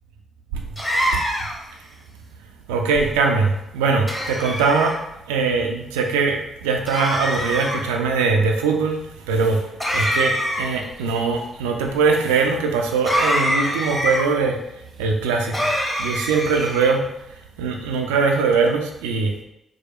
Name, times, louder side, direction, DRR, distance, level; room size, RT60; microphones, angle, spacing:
sound 1, 0.8-1.7 4.1-5.0 6.9-7.8 9.8-10.9 13.0-14.2 15.5-16.9, equal, 15° left, 1.0 m, -24 dB
voice 1, 2.7-4.9 5.3-9.0 9.3-9.6 9.9-14.6 15.0-15.7 16.0-17.0 17.6-19.4, right 4 dB, 70° right, 2 dB, 0.3 m, -21 dB
4.6 x 2.1 x 3.0 m, 0.84 s
figure-of-eight pair, 40°, 0 cm